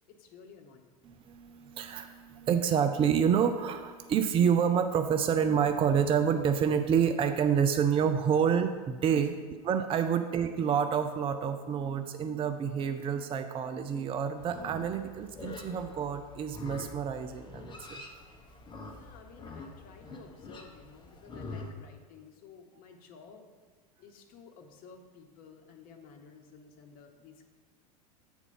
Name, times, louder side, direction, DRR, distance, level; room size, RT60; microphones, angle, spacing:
voice 1, 0.1-0.9 9.1-9.3 18.8-23.5 24.0-27.4, left 5 dB, 45° left, 4 dB, 1.2 m, -53 dB
voice 2, 1.0-9.3 9.7-18.0, right 7 dB, 25° right, 8 dB, 0.5 m, -28 dB
Livestock farm animals working animals, 14.4-21.7, left 3 dB, 25° left, 1.1 m, -45 dB
8.0 x 4.4 x 5.4 m, 1.4 s
hypercardioid pair, 85°, 20 cm